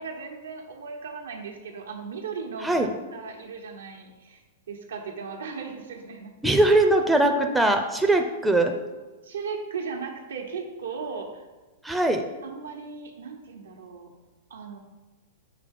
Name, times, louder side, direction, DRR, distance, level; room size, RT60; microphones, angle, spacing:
voice 1, 0.0-4.4 4.7-6.5 9.2-11.4 12.4-14.1 14.5-14.8, right 5 dB, 90° right, 2 dB, 1.0 m, -37 dB
voice 2, 6.4-8.7 11.8-12.2, right 2 dB, 5° right, 4 dB, 0.5 m, -21 dB
6.7 x 3.1 x 5.2 m, 1.2 s
hypercardioid pair, 130°, 0 cm